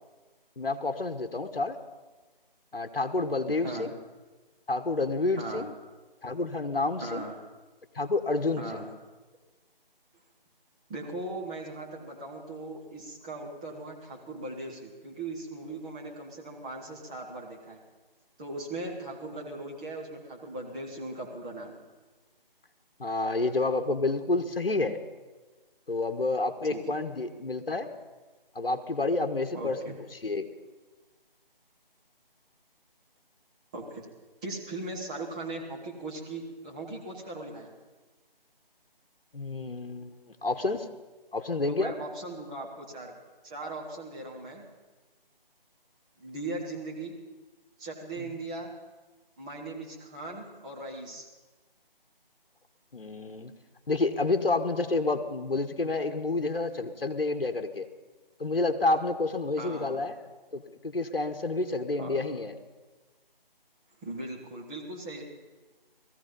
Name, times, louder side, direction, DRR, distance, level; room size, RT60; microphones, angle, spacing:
voice 1, 0.6-1.8 2.7-3.9 4.7-5.7 6.2-7.2 7.9-8.9 23.0-25.0 25.9-27.9 28.5-30.4 39.3-40.9 41.3-41.9 48.2-48.3 52.9-53.5 53.9-57.9 58.4-60.2 60.5-62.5, left 3 dB, 70° left, 7 dB, 1.3 m, -29 dB
voice 2, 3.5-3.9 5.4-5.7 7.0-7.4 8.6-8.8 10.9-17.8 18.4-21.8 26.7-27.0 29.5-29.9 33.7-34.1 34.4-37.7 41.7-43.1 43.4-44.6 46.2-47.1 47.8-48.7 49.4-51.3 59.6-60.0 62.0-62.2 64.0-65.2, right 2 dB, 5° right, -4 dB, 0.9 m, -39 dB
18.0 x 14.5 x 5.4 m, 1.3 s
figure-of-eight pair, 155°, 29 cm